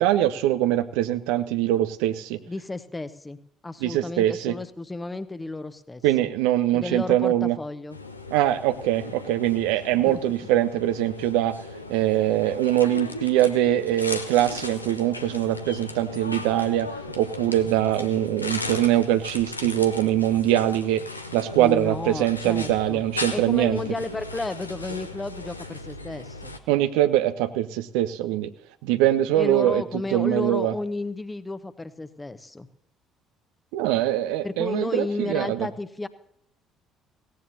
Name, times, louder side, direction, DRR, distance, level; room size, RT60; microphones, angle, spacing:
voice 1, 0.0-2.4 3.8-4.5 6.0-7.6 8.3-11.6 11.9-16.9 17.2-21.0 21.3-23.8 26.7-28.5 28.8-29.8 30.1-30.7 33.7-35.7, right 13 dB, 65° right, 11 dB, 0.6 m, -23 dB
voice 2, 2.5-3.4 3.6-6.3 6.7-8.0 9.9-10.2 21.6-23.0 23.3-26.5 29.3-32.7 34.4-36.1, left 2 dB, 15° left, 12 dB, 1.0 m, -32 dB
sound 1, 7.9-26.6, left 3 dB, 85° left, 0.7 m, -37 dB
17.5 x 17.0 x 2.8 m, 0.70 s
figure-of-eight pair, 50°, 0 cm